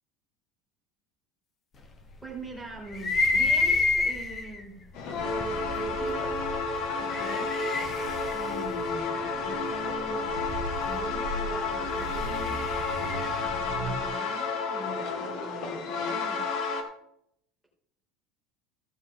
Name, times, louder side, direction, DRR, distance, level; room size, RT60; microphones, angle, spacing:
voice 1, 2.2-6.7 7.0-7.5 8.3-10.3 10.8-12.6 13.4-16.5, right 2 dB, 5° right, -1 dB, 2.4 m, -44 dB
sound 1, 2.9-4.6 5.4-5.5 6.8-9.7 11.8-13.5, left 3 dB, 20° left, 1.1 m, -28 dB
sound 2, 4.9-16.8, left 4 dB, 50° left, 1.8 m, -31 dB
sound 3, 5.1-14.1, right 1 dB, 90° right, 1.7 m, -40 dB
15.0 x 7.0 x 3.7 m, 0.75 s
cardioid pair, 175°, 0 cm